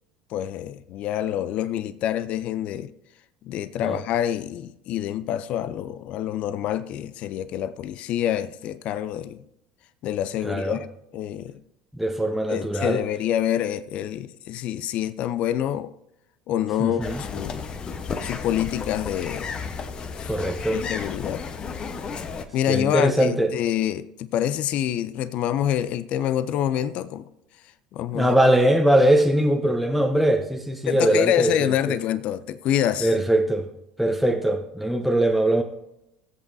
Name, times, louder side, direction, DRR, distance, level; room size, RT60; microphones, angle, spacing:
voice 1, 0.3-2.9 3.5-9.4 10.0-10.9 11.1-11.5 12.5-15.9 16.5-17.6 18.2-19.5 20.2-20.4 20.7-21.5 22.5-27.3 27.9-28.3 30.9-33.2, left 11 dB, 50° left, 0.5 m, -26 dB
voice 2, 10.4-10.8 12.0-13.0 16.8-17.2 20.3-20.8 22.7-23.5 28.1-31.7 33.0-33.7 34.0-35.6, right 1 dB, ahead, 0.9 m, -21 dB
sound 1, 17.0-22.5, left 5 dB, 35° left, 1.0 m, -33 dB
16.5 x 8.0 x 2.7 m
hypercardioid pair, 70°, 3 cm